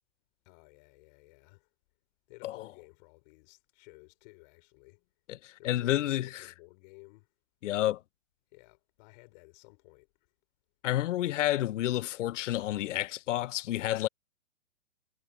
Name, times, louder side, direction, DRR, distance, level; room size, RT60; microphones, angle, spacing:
voice 1, 0.4-1.7 2.3-5.1 5.4-7.3 8.5-10.1, left 29 dB, 35° left, 5.1 m, -55 dB
voice 2, 5.3-6.5 7.6-8.0 10.8-14.1, left 14 dB, 70° left, 0.5 m, -30 dB
hypercardioid pair, 160°, 39 cm